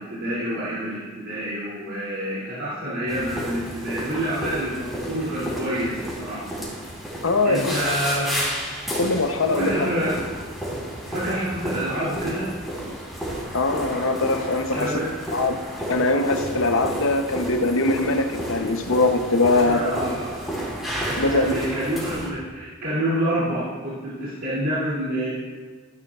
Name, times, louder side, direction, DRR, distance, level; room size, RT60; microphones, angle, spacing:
voice 1, 0.0-6.5 7.4-8.4 9.6-10.2 11.1-12.5 14.7-15.1 19.6-20.4 21.2-25.3, right 1 dB, 75° right, -10 dB, 2.8 m, -27 dB
sound 1, 3.1-22.3, equal, ahead, 3.5 m, -32 dB
voice 2, 7.2-7.8 8.9-9.9 13.5-15.0 15.3-15.6 15.9-19.9 21.1-21.6, left 2 dB, 75° left, 6 dB, 0.9 m, -22 dB
14.0 x 11.0 x 2.5 m, 1.5 s
head